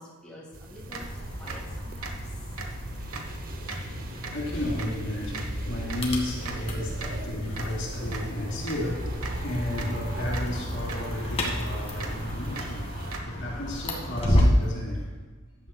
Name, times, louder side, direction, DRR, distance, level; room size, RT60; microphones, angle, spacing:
voice 1, 0.0-2.2 12.6-12.7, left 1 dB, 5° left, -6 dB, 2.6 m, -47 dB
sound 1, 0.5-13.2, right 2 dB, 40° right, 0.8 m, -41 dB
sound 2, 0.8-13.2, right 3 dB, 80° right, 1.4 m, -42 dB
sound 3, 1.0-14.7, equal, 30° left, 1.9 m, -31 dB
voice 2, 2.9-15.1, left 1 dB, 60° left, -3 dB, 3.3 m, -34 dB
14.5 x 11.0 x 2.4 m, 1.4 s
head